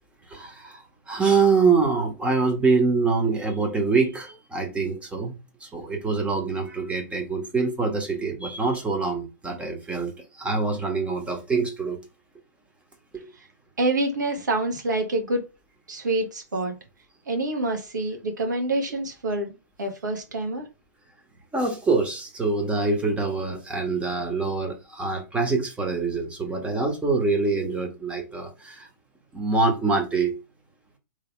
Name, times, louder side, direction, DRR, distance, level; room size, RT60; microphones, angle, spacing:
voice 1, 0.3-5.3 5.6-10.1 10.4-12.0 13.1-13.3 21.5-28.9 29.3-30.3, right 4 dB, 10° right, 1.5 m, -25 dB
voice 2, 13.8-15.4 15.9-16.7 17.3-20.7, right 2 dB, 75° right, 1.7 m, -27 dB
3.4 x 3.4 x 4.7 m
figure-of-eight pair, 110°, 10 cm